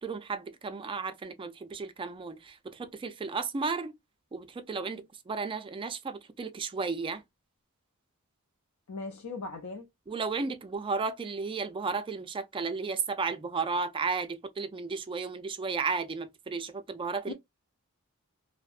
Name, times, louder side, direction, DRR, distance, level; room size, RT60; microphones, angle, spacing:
voice 1, 0.0-3.9 4.3-7.2 10.1-17.3, right 4 dB, 25° right, 0.3 m, -34 dB
voice 2, 8.9-9.9 17.3-17.4, left 3 dB, 65° left, 0.4 m, -38 dB
2.6 x 2.0 x 2.3 m
head